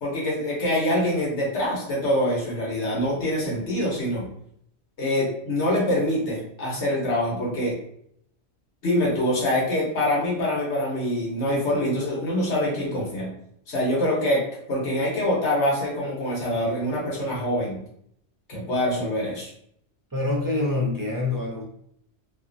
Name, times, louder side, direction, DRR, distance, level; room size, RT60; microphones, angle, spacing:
voice 1, 0.0-4.3 5.0-7.8 8.8-13.3 13.7-14.4 14.7-17.8 18.5-19.5, left 1 dB, 75° left, -4 dB, 1.3 m, -25 dB
voice 2, 20.1-21.6, left 2 dB, 30° right, -4 dB, 0.4 m, -25 dB
2.6 x 2.4 x 2.5 m, 0.69 s
omnidirectional pair, 1.2 m